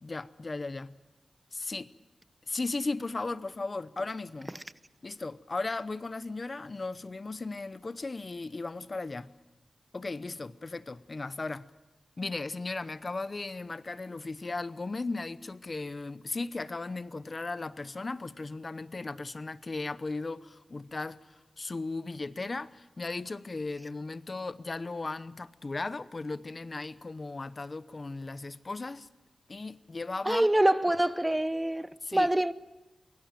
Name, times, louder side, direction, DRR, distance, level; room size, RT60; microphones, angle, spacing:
voice 1, 0.0-1.0 1.5-1.9 2.5-4.6 5.0-9.3 9.9-11.7 12.2-29.1 29.5-30.5 32.0-32.3, left 3 dB, 40° left, 0.8 m, -36 dB
voice 2, 30.2-32.5, right 1 dB, 15° right, 0.8 m, -25 dB
24.0 x 23.0 x 7.5 m
cardioid pair, 65°, 0 cm